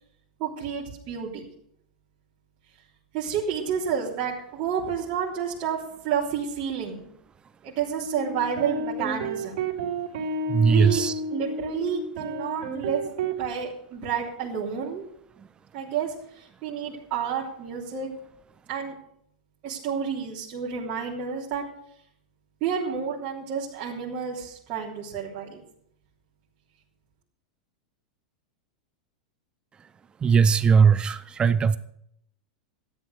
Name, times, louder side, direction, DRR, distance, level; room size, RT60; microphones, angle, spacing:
voice 1, 0.4-1.5 3.1-7.1 7.6-9.6 10.7-11.0 11.3-13.1 13.4-15.1 15.7-18.1 18.7-18.9 19.6-21.6 22.6-25.6, right 7 dB, 45° right, -6 dB, 3.4 m, -30 dB
sound 1, 8.0-13.4, right 2 dB, 65° right, 4.0 m, -31 dB
voice 2, 10.5-11.1 30.2-31.8, right 6 dB, 25° right, 15 dB, 0.7 m, -19 dB
14.0 x 10.5 x 6.5 m, 0.70 s
hypercardioid pair, 110°, 4 cm